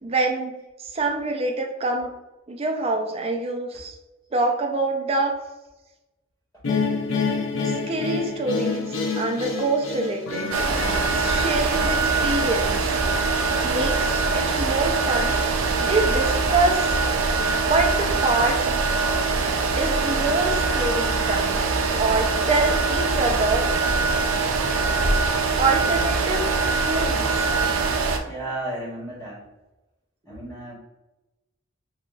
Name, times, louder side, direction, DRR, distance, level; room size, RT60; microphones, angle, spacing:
voice 1, 0.0-2.1 2.5-4.0 4.3-5.3 7.6-10.5 11.1-12.8 13.6-15.4 15.8-17.0 17.7-18.6 19.8-21.6 22.0-23.7 25.6-26.4 26.8-27.5, right 3 dB, 30° right, 2 dB, 0.4 m, -25 dB
sound 1, 6.6-13.7, left 4 dB, 70° left, 0.5 m, -29 dB
sound 2, 10.5-28.2, right 3 dB, 80° right, 0.5 m, -23 dB
voice 2, 28.3-29.4 30.2-30.7, right 1 dB, 15° left, -6 dB, 1.1 m, -33 dB
6.4 x 2.3 x 2.4 m, 1.0 s
head